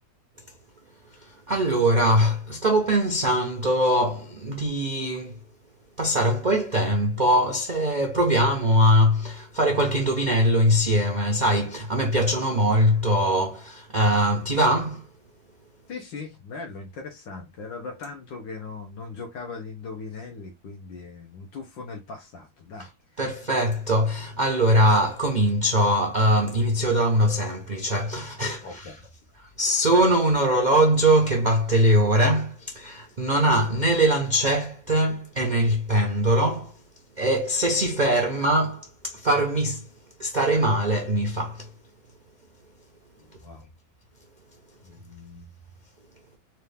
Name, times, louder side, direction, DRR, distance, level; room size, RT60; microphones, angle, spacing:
voice 1, 1.5-5.3 6.0-15.0 23.2-28.8 29.6-36.7 37.2-39.8 40.2-41.7, equal, 75° right, 0.4 m, -22 dB
voice 2, 15.9-23.4 28.6-29.0 43.2-43.7 44.8-45.5, left 4 dB, 75° left, 1.6 m, -39 dB
4.4 x 2.6 x 3.3 m
omnidirectional pair, 2.0 m